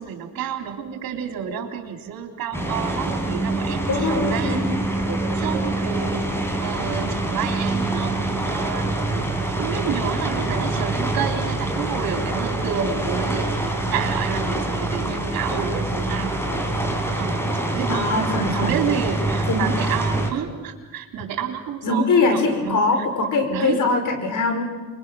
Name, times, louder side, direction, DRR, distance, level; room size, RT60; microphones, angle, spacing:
voice 1, 0.0-6.3 6.6-9.1 9.5-16.4 17.2-22.8 23.5-23.9, right 8 dB, 80° right, 4 dB, 3.5 m, -30 dB
sound 1, 2.5-20.3, right 2 dB, 5° left, 4.3 m, -25 dB
voice 2, 3.9-4.8 17.9-18.8 19.5-19.7 21.8-24.6, left 3 dB, 60° left, 6 dB, 4.9 m, -22 dB
29.0 x 23.0 x 6.3 m, 1.3 s
cardioid pair, 85°, 35 cm